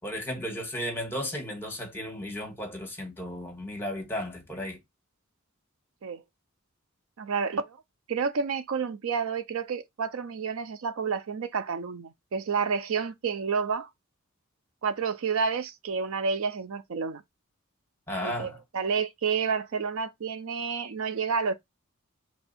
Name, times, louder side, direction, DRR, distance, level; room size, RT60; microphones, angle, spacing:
voice 1, 0.0-4.8 18.1-18.6, equal, 10° left, 1.5 m, -34 dB
voice 2, 7.2-7.8 8.1-13.9 14.8-17.2 18.2-21.5, right 5 dB, 70° right, 0.5 m, -30 dB
3.3 x 2.6 x 4.1 m
head